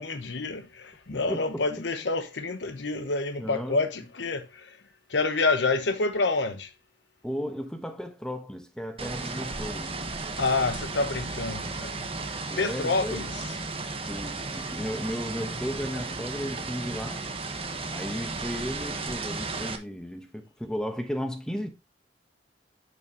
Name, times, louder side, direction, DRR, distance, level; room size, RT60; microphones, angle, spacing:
voice 1, 0.0-4.8 5.1-6.7 10.4-12.0 12.6-13.4, left 3 dB, 80° left, 0.9 m, -28 dB
voice 2, 1.1-1.6 3.4-3.8 7.2-10.0 12.5-13.3 14.1-17.3 17.9-21.7, equal, 5° left, 1.2 m, -35 dB
sound 1, 9.0-19.8, right 3 dB, 30° right, 1.4 m, -34 dB
11.0 x 6.4 x 2.9 m
head